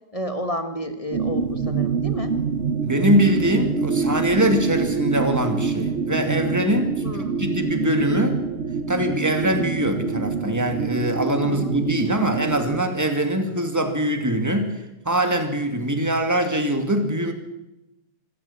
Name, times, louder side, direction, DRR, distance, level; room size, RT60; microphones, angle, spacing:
voice 1, 0.1-2.3 7.0-7.4 11.4-11.7, equal, 20° left, 8 dB, 1.6 m, -31 dB
sound 1, 1.1-12.8, right 5 dB, 45° right, 1.2 m, -26 dB
voice 2, 2.8-6.9 7.4-8.4 8.9-14.7 15.0-17.3, equal, 10° right, 6 dB, 2.5 m, -22 dB
25.5 x 13.5 x 8.8 m, 0.92 s
omnidirectional pair, 1.9 m